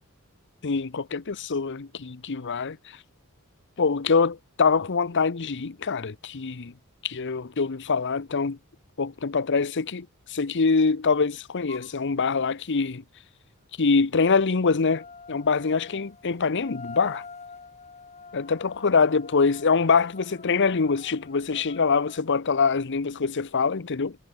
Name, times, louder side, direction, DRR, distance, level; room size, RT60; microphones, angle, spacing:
voice 1, 0.6-3.0 3.8-6.7 7.0-8.6 9.0-13.0 13.8-17.2 18.3-24.2, left 5 dB, 55° left, 0.8 m, -24 dB
sound 1, 11.7-11.9 14.9-22.3, left 4 dB, 30° left, 3.1 m, -46 dB
head